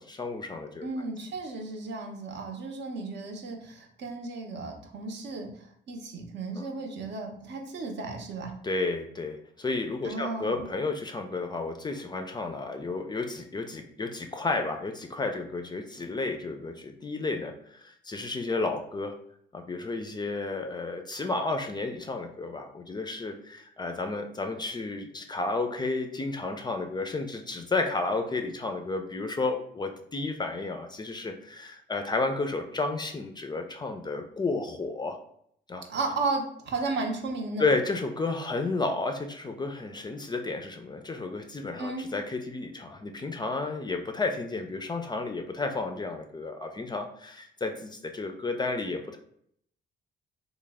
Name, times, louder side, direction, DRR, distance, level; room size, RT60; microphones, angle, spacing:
voice 1, 0.0-1.1 6.6-6.7 8.6-19.1 19.5-35.2 35.7-35.8 37.6-49.2, left 3 dB, 20° left, 5 dB, 0.3 m, -32 dB
voice 2, 0.8-5.5 5.9-8.5 10.0-10.7 35.9-37.6 41.8-42.1, right 3 dB, 65° right, 3 dB, 0.6 m, -34 dB
3.1 x 2.1 x 3.4 m, 0.67 s
cardioid pair, 90°, 20 cm